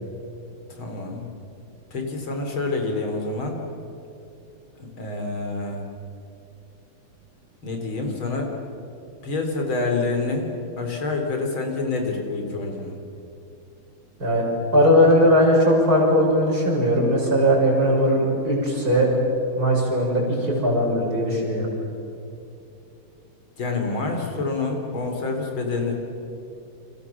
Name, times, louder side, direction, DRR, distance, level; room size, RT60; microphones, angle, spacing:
voice 1, 0.8-1.3 1.9-3.6 4.8-5.8 7.6-8.5 9.2-10.5 10.8-13.0 23.6-25.9, left 3 dB, 85° left, 2 dB, 4.5 m, -27 dB
voice 2, 14.7-19.1 19.6-21.7, equal, 50° right, -1 dB, 6.7 m, -19 dB
29.5 x 26.5 x 7.3 m, 2.8 s
omnidirectional pair, 2.2 m